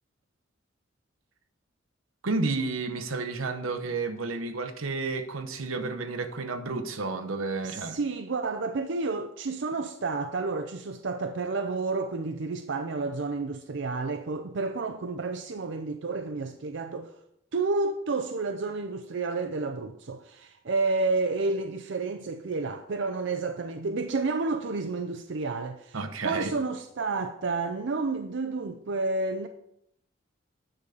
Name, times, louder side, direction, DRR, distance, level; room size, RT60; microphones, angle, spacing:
voice 1, 2.2-8.0 25.9-26.5, right 3 dB, 85° right, 1.0 m, -31 dB
voice 2, 7.6-17.2 17.5-26.0 26.2-29.5, right 3 dB, 60° right, 0.5 m, -30 dB
9.7 x 4.0 x 6.8 m
head